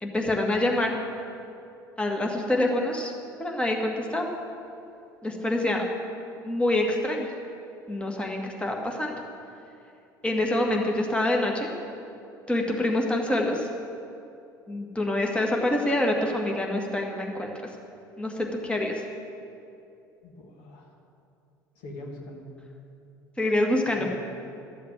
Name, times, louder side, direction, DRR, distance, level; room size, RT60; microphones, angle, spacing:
voice 1, 0.0-1.0 2.0-3.1 3.4-4.3 5.2-5.9 6.4-7.3 7.9-9.1 10.2-11.7 12.5-13.7 14.7-17.5 18.2-19.0 23.4-24.1, left 1 dB, 10° left, 1 dB, 1.9 m, -26 dB
voice 2, 20.2-20.9 21.8-22.5 24.0-24.1, left 1 dB, 60° left, 1 dB, 1.8 m, -42 dB
13.0 x 7.2 x 8.7 m, 2.7 s
figure-of-eight pair, 65°, 11 cm